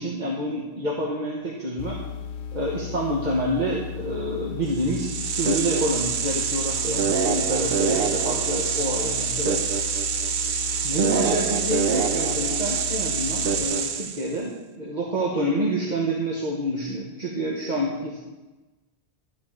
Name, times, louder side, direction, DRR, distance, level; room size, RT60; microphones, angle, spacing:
voice 1, 0.0-2.0 2.5-9.6 10.8-14.5 14.8-18.2, equal, 45° right, -3 dB, 1.5 m, -28 dB
sound 1, 1.8-13.6, left 7 dB, 65° left, 0.8 m, -36 dB
sound 2, 4.8-14.3, right 7 dB, 65° right, 0.9 m, -25 dB
12.5 x 4.8 x 7.3 m, 1.1 s
omnidirectional pair, 1.1 m